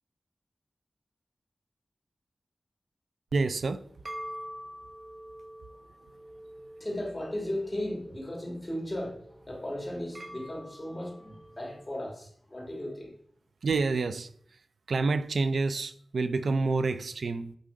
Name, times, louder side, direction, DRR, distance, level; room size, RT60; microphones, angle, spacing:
voice 1, 3.3-3.9 13.6-14.3 14.9-17.6, right 3 dB, 85° right, 0.4 m, -28 dB
sound 1, 3.5-11.9, equal, 40° right, 1.1 m, -46 dB
voice 2, 6.8-13.1, left 1 dB, 20° left, 2.8 m, -36 dB
7.7 x 3.7 x 5.1 m
wide cardioid pair, 95°, 0 cm